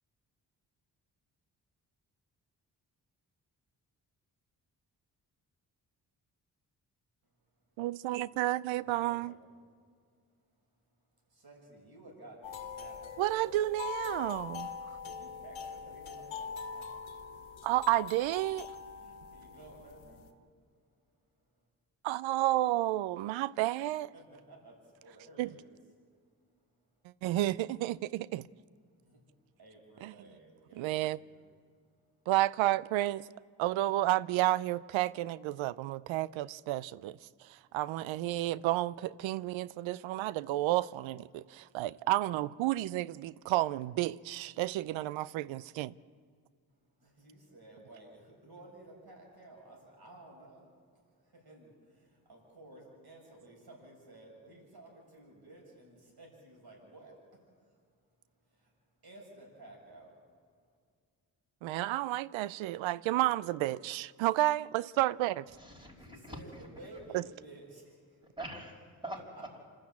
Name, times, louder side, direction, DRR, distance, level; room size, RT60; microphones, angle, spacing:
voice 1, 7.8-9.3 13.2-14.7 17.6-18.7 22.0-24.1 25.4-25.5 27.2-28.5 30.0-30.1 30.7-31.2 32.3-33.2 33.6-37.2 37.7-45.9 61.6-65.4 67.1-67.2, right 15 dB, 90° right, 0.5 m, -31 dB
voice 2, 8.7-9.4 11.3-13.4 14.9-16.9 18.9-20.3 24.1-25.7 29.0-29.2 29.6-31.5 47.0-50.7 51.1-57.8 58.5-58.7 59.0-60.2 65.7-68.3, right 2 dB, 55° right, 7.6 m, -54 dB
sound 1, 12.4-20.3, left 6 dB, 80° left, 1.6 m, -43 dB
voice 3, 65.5-66.7 68.2-69.6, right 1 dB, 10° right, 5.6 m, -44 dB
26.0 x 13.0 x 8.5 m
supercardioid pair, 45°, 45 cm